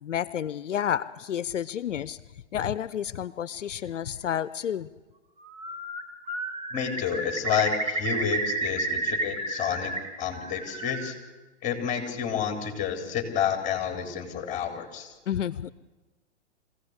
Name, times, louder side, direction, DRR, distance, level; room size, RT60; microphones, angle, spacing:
voice 1, 0.0-2.2 2.5-4.9 15.3-15.7, left 9 dB, 85° left, 17 dB, 0.8 m, -30 dB
Bird, 5.4-6.0 6.3-10.0 10.3-11.1, right 2 dB, 15° right, 2.9 m, -31 dB
voice 2, 6.7-9.9 10.2-11.1 11.6-15.1, left 7 dB, 20° left, 5 dB, 3.8 m, -29 dB
24.0 x 16.5 x 8.2 m, 1.2 s
hypercardioid pair, 130°, 36 cm